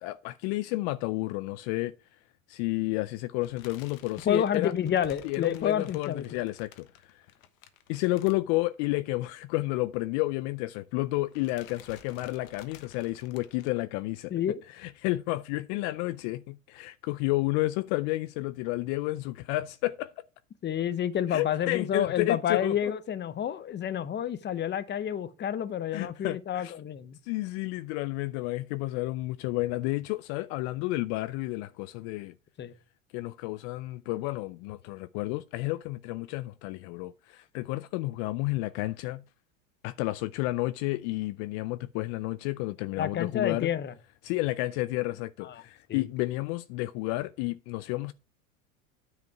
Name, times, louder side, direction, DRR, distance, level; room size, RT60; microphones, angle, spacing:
voice 1, 0.0-1.9 2.5-4.7 5.2-7.2 7.9-14.3 14.8-20.1 21.3-22.9 25.9-26.7 27.2-32.3 33.1-39.2 39.8-43.7 44.2-48.1, left 19 dB, 60° left, 0.5 m, -31 dB
sound 1, 3.4-9.0 9.3-9.4 9.7-9.8 10.8-11.1 11.3-13.7, left 9 dB, 80° left, 1.2 m, -53 dB
voice 2, 4.3-6.4 14.3-14.6 20.6-27.2 32.6-32.7 43.0-43.9 45.4-45.6 45.9-46.1, left 9 dB, 25° left, 0.8 m, -29 dB
9.6 x 5.1 x 4.5 m
hypercardioid pair, 100°, 40 cm